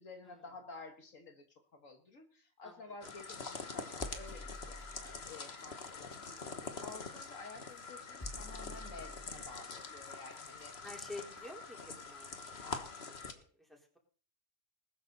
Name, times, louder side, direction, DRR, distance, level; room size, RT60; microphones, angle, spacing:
voice 1, 0.0-1.5 1.7-6.6 6.8-10.8, left 3 dB, 75° left, 4 dB, 2.1 m, -52 dB
voice 2, 2.6-2.9 10.8-12.6 13.3-14.0, left 2 dB, ahead, -1 dB, 4.1 m, -50 dB
sound 1, 3.0-13.3, left 4 dB, 50° left, 1.7 m, -45 dB
sound 2, 4.0-5.3 7.1-7.3 8.2-9.5 11.4-11.5 12.0-12.1, left 1 dB, 15° left, 2.2 m, -48 dB
19.5 x 12.5 x 4.1 m, 0.42 s
omnidirectional pair, 1.4 m